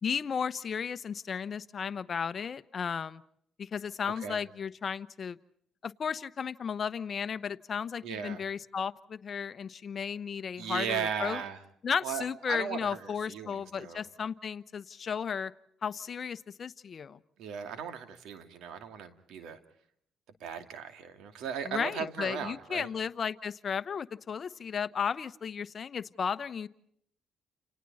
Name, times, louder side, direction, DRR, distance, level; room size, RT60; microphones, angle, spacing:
voice 1, 0.0-3.2 3.6-5.4 5.8-11.4 11.8-15.5 15.8-17.2 21.6-26.7, left 6 dB, 45° left, 13 dB, 1.0 m, -34 dB
voice 2, 8.0-8.4 10.6-11.6 12.0-14.0 17.4-19.6 20.4-22.9, right 7 dB, 85° right, 8 dB, 2.6 m, -37 dB
30.0 x 29.0 x 4.3 m, 0.69 s
cardioid pair, 90°, 0 cm